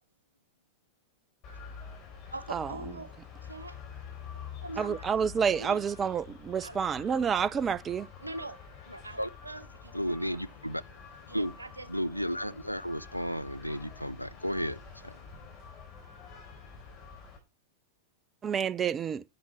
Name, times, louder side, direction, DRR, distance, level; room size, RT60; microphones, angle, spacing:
sound 1, 1.4-17.4, left 6 dB, 35° left, 4.3 m, -47 dB
voice 1, 2.3-3.1 3.4-3.8 4.6-5.1 5.6-5.8 6.6-6.8 8.2-8.6 9.0-9.2 9.4-10.0 11.3-11.9, right 2 dB, 80° right, 1.0 m, -42 dB
voice 2, 4.8-8.1 18.4-19.2, right 7 dB, 25° right, 0.4 m, -29 dB
voice 3, 8.9-9.3 9.9-10.8 11.3-11.6 11.9-15.2, equal, 90° left, 0.4 m, -33 dB
10.0 x 7.3 x 4.3 m
figure-of-eight pair, 90°, 0 cm